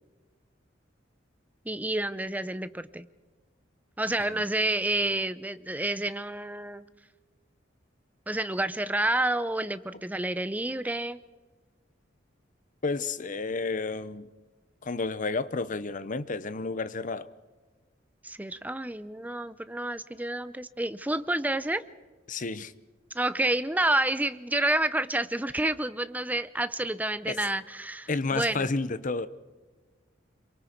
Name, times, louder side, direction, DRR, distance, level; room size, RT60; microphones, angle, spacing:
voice 1, 1.6-3.1 4.0-6.8 8.3-11.2 18.2-21.8 23.1-28.7, right 1 dB, 10° right, 13 dB, 0.7 m, -29 dB
voice 2, 12.8-14.3 14.8-17.3 22.3-22.7 27.3-27.4 28.1-29.3, left 3 dB, 45° left, 14 dB, 0.8 m, -31 dB
26.5 x 24.0 x 4.6 m, 1.3 s
head